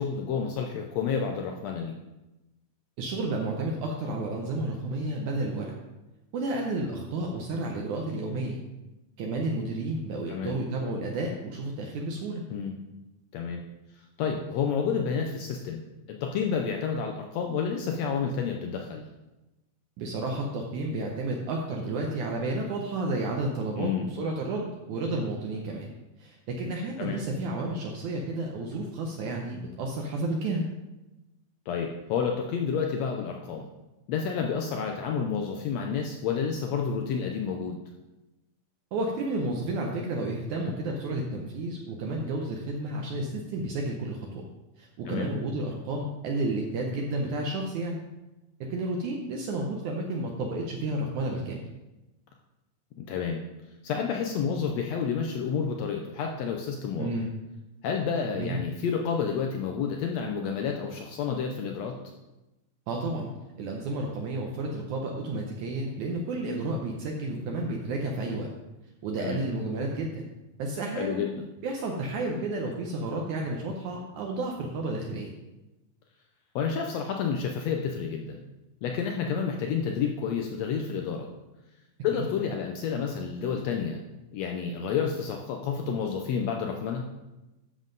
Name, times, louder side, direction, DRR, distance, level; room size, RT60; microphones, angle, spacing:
voice 1, 0.0-2.0 10.3-10.5 12.5-12.7 13.3-13.6 14.2-15.8 16.1-19.0 23.8-24.1 27.0-27.2 31.7-33.7 34.1-37.8 45.1-45.3 53.0-53.4 53.8-57.1 57.8-62.0 69.2-69.4 70.9-71.4 76.5-78.4 78.8-81.3 82.0-84.0 84.3-87.0, left 6 dB, 90° left, 2 dB, 1.5 m, -30 dB
voice 2, 3.0-5.7 6.3-8.6 9.2-12.4 20.0-25.9 26.2-30.7 38.9-44.5 44.8-48.0 48.7-51.6 57.0-57.3 58.3-58.6 62.9-63.3 63.6-68.5 69.0-70.3 70.6-71.2 71.6-75.3 82.1-82.3, right 2 dB, 70° right, 0 dB, 2.1 m, -31 dB
11.0 x 7.3 x 3.9 m, 1.0 s
omnidirectional pair, 3.9 m